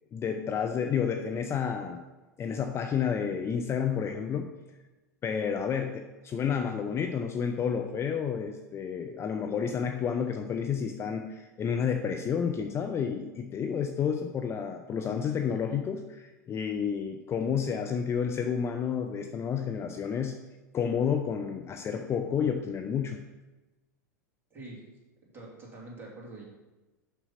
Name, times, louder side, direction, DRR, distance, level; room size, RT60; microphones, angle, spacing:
voice 1, 0.1-2.0 2.4-4.5 5.2-20.4 20.7-23.2, left 7 dB, 30° left, 5 dB, 0.7 m, -30 dB
voice 2, 24.5-24.8 25.3-26.4, right 2 dB, 20° right, -4 dB, 3.3 m, -45 dB
6.9 x 6.1 x 5.8 m, 1.1 s
hypercardioid pair, 95°, 9 cm